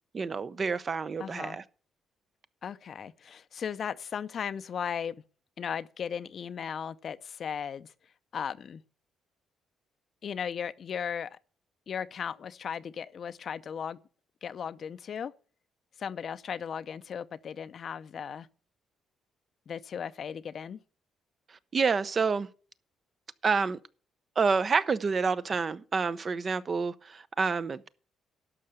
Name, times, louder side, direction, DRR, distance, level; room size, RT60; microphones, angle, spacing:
voice 1, 0.1-1.6 21.7-22.5 23.4-23.8 24.4-27.9, right 5 dB, 40° right, 0.7 m, -28 dB
voice 2, 1.2-1.6 2.6-5.1 5.6-7.9 8.3-8.8 10.2-11.4 11.9-14.0 14.4-15.3 16.0-18.5 19.7-20.8, left 7 dB, 55° left, 0.6 m, -36 dB
12.0 x 5.7 x 7.8 m
cardioid pair, 90°, 0 cm